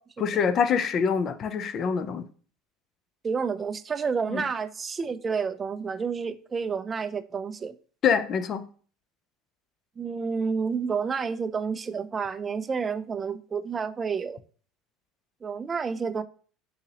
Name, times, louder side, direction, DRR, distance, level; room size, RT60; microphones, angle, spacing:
voice 1, 0.2-2.2 4.3-4.4 8.0-8.6, left 6 dB, 45° left, 0.4 m, -25 dB
voice 2, 3.2-7.7 10.0-14.4 15.4-16.2, right 5 dB, 30° right, 0.3 m, -30 dB
3.9 x 2.8 x 2.8 m
hypercardioid pair, 80°, 0 cm